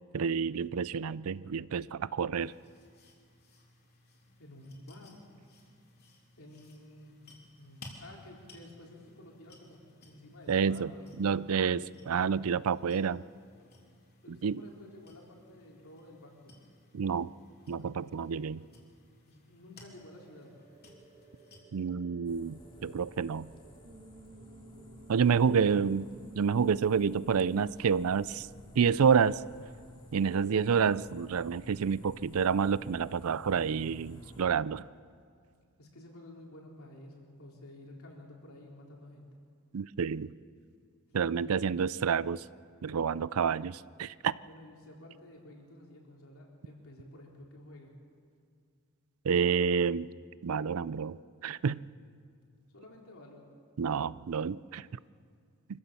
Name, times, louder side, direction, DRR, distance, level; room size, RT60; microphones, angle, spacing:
voice 1, 0.1-2.5 10.5-10.9 11.2-11.8 12.1-13.2 14.4-14.6 16.9-17.3 17.7-18.6 21.7-23.5 25.1-26.1 26.4-28.5 28.8-29.4 30.1-34.8 39.7-40.3 41.1-42.4 42.8-44.4 49.2-50.1 50.4-51.2 51.4-51.8 53.8-54.9, right 6 dB, 70° right, 19 dB, 0.4 m, -28 dB
sound 1, 2.3-21.6, left 2 dB, 50° left, 3.5 m, -58 dB
voice 2, 4.4-5.2 6.4-7.1 7.6-9.8 10.1-11.7 14.2-16.5 19.3-20.5 25.3-26.2 35.8-39.3 41.1-41.6 44.4-47.9 52.7-53.4, left 1 dB, 70° left, -1 dB, 4.1 m, -51 dB
sound 2, 19.8-27.8, right 1 dB, 35° right, 5.9 m, -55 dB
sound 3, 22.2-34.4, equal, 25° left, 2.5 m, -53 dB
25.5 x 15.5 x 7.0 m, 2.2 s
head